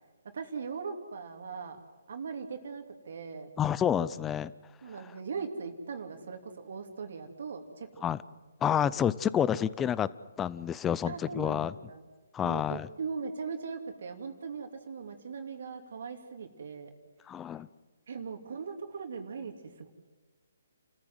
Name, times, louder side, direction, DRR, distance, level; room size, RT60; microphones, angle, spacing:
voice 1, 0.3-1.8 2.1-3.5 4.8-8.1 11.1-12.0 12.4-16.9 18.1-19.5, right 5 dB, 65° right, 4 dB, 2.8 m, -39 dB
voice 2, 3.6-4.5 8.0-8.2 8.6-10.1 10.4-11.7 12.3-12.9 17.3-17.7, left 9 dB, 15° left, 18 dB, 0.6 m, -29 dB
29.5 x 14.5 x 7.8 m, 1.3 s
hypercardioid pair, 140°, 0 cm